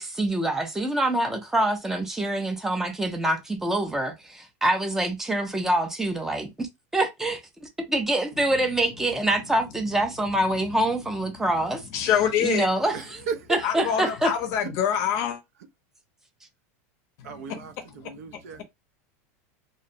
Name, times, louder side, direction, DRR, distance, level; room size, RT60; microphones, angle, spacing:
voice 1, 0.0-6.7 6.9-7.4 7.9-11.8 12.4-13.2 13.5-14.3, right 1 dB, 5° right, 0.4 m, -25 dB
voice 2, 11.9-12.7 13.6-15.4 17.2-17.6 18.0-18.6, left 9 dB, 40° left, 0.6 m, -26 dB
voice 3, 12.9-13.6 14.0-14.1 17.2-18.6, right 6 dB, 90° right, 0.5 m, -35 dB
2.5 x 2.0 x 2.6 m
supercardioid pair, 160°, 8 cm